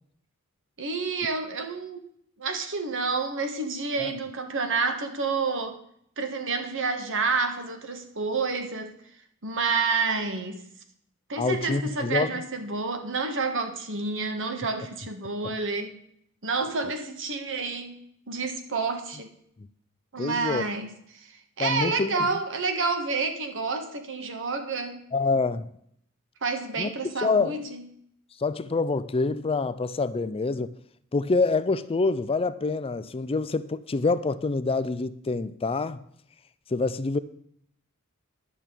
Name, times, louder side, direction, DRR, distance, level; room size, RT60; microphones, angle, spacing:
voice 1, 0.8-2.1 2.4-5.8 6.2-8.9 9.4-10.6 11.3-15.9 16.4-19.3 20.1-25.1 26.4-27.9, right 4 dB, 60° right, 1.6 m, -29 dB
voice 2, 11.4-12.3 15.4-15.5 20.2-20.6 21.6-22.3 25.1-25.6 26.8-26.9 27.2-27.5 28.4-30.7 31.1-36.0 36.7-37.2, left 3 dB, 25° left, 0.4 m, -26 dB
11.0 x 6.1 x 8.5 m
head